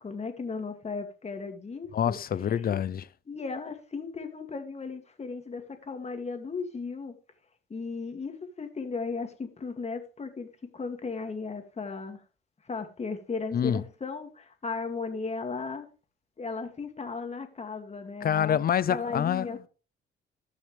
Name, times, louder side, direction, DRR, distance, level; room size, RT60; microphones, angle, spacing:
voice 1, 0.0-2.2 2.4-2.5 3.3-7.1 7.7-10.5 10.7-12.2 12.6-15.9 16.4-18.6 18.9-19.7, left 4 dB, 35° left, 2.3 m, -36 dB
voice 2, 1.9-3.1 13.5-13.8 18.2-19.6, left 9 dB, 50° left, 0.6 m, -26 dB
18.5 x 6.5 x 3.3 m
cardioid pair, 90°, 20 cm